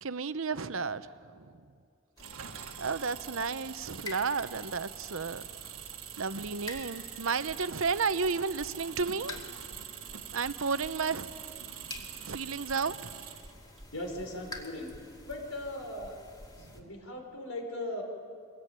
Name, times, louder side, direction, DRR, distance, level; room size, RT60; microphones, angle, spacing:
voice 1, 0.0-1.6 2.8-5.4 6.2-9.4 10.3-11.3 11.6-11.7 12.2-13.1 16.6-16.9, right 5 dB, 65° right, 13 dB, 0.8 m, -32 dB
sound 1, 2.2-16.8, left 2 dB, 20° left, 2.4 m, -49 dB
Engine, 2.2-13.8, right 10 dB, 85° right, 1.7 m, -45 dB
voice 2, 13.9-14.9 15.3-16.2 16.6-18.0, left 1 dB, 85° left, 3 dB, 4.9 m, -38 dB
24.5 x 21.0 x 9.3 m, 2.3 s
head